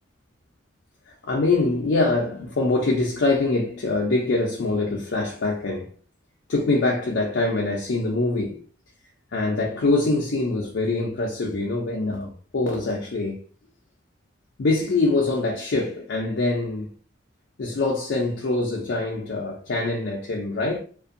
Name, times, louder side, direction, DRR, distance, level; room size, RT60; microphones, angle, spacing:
voice 1, 1.2-5.9 6.5-8.6 9.3-13.4 14.6-16.9 17.6-20.8, left 2 dB, 60° left, 0.4 m, -24 dB
2.5 x 2.2 x 2.5 m
head